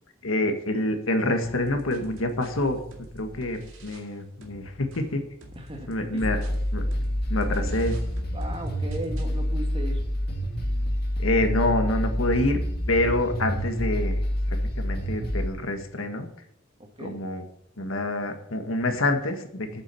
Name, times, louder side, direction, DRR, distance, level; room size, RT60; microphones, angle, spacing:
voice 1, 0.2-2.8 3.1-5.2 5.9-6.4 6.7-7.0 7.3-7.9 11.2-12.6 12.9-16.3 17.0-17.4 17.8-19.8, left 1 dB, 85° left, 5 dB, 1.7 m, -27 dB
sound 1, 1.4-4.1 4.4-9.4, equal, 85° right, 2.2 m, -47 dB
voice 2, 5.6-6.2 7.6-7.7 8.3-10.0 16.8-17.2, right 1 dB, 25° right, 2 dB, 2.2 m, -37 dB
sound 2, 6.2-15.5, equal, 50° left, 2.2 m, -27 dB
9.0 x 7.3 x 7.0 m, 0.71 s
head